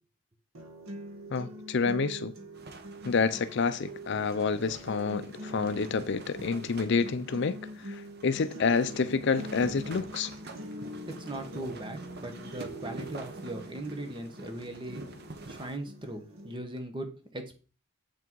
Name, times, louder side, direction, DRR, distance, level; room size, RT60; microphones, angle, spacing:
sound 1, 0.5-16.5, equal, 70° right, 1.6 m, -44 dB
voice 1, 1.3-2.3 3.0-10.3, left 5 dB, 50° left, 0.4 m, -28 dB
sound 2, 2.5-15.8, right 2 dB, 45° right, 1.0 m, -47 dB
voice 2, 11.1-15.0 15.5-17.6, right 1 dB, 20° right, 1.2 m, -39 dB
7.8 x 6.1 x 4.6 m
head